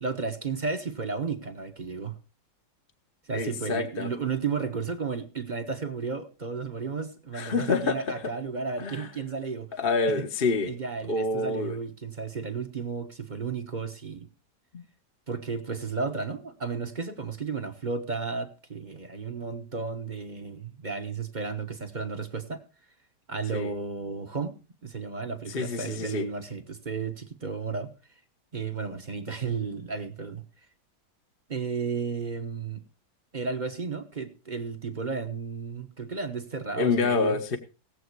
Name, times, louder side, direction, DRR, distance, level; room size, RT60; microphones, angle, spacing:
voice 1, 0.0-2.1 3.3-9.7 10.1-10.2 10.6-14.3 15.3-22.6 23.3-24.6 24.8-27.9 28.5-30.4 31.5-32.9 33.3-37.4, right 5 dB, 30° right, 8 dB, 1.1 m, -33 dB
voice 2, 3.3-4.1 7.3-8.0 8.8-9.1 9.8-10.7 11.1-11.7 14.7-14.8 23.5-23.7 25.5-26.3 36.8-37.6, left 4 dB, 35° left, 5 dB, 1.2 m, -27 dB
17.5 x 7.8 x 4.6 m, 0.33 s
omnidirectional pair, 1.8 m